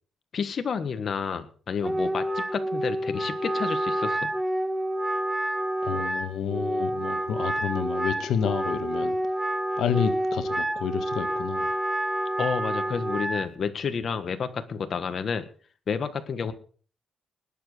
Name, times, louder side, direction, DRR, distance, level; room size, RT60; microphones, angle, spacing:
voice 1, 0.3-4.3 12.4-15.4 15.9-16.5, left 6 dB, 45° left, 1.5 m, -30 dB
Wind instrument woodwind instrument, 1.8-13.5, right 1 dB, 10° right, 1.3 m, -28 dB
voice 2, 5.8-9.1 9.8-11.7, left 8 dB, 75° left, 1.5 m, -29 dB
20.0 x 7.4 x 6.7 m
cardioid pair, 135°, 0 cm